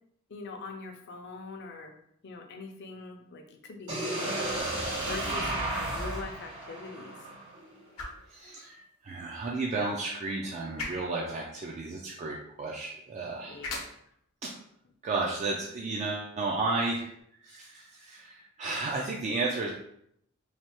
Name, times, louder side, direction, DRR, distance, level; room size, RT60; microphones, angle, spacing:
voice 1, 0.3-1.9 2.2-4.7 5.0-7.3 13.5-13.7, left 3 dB, 55° left, 4 dB, 0.5 m, -42 dB
sound 1, 3.9-7.8, right 1 dB, 80° right, 1.5 m, -33 dB
sound 2, 4.8-6.4, equal, 50° right, 1.0 m, -40 dB
sound 3, 7.8-17.2, left 3 dB, 90° left, 0.8 m, -47 dB
voice 2, 8.3-13.6 14.4-14.5 15.0-17.1 17.4-19.7, right 3 dB, 35° right, -2 dB, 0.3 m, -33 dB
3.2 x 2.2 x 2.9 m, 0.71 s
head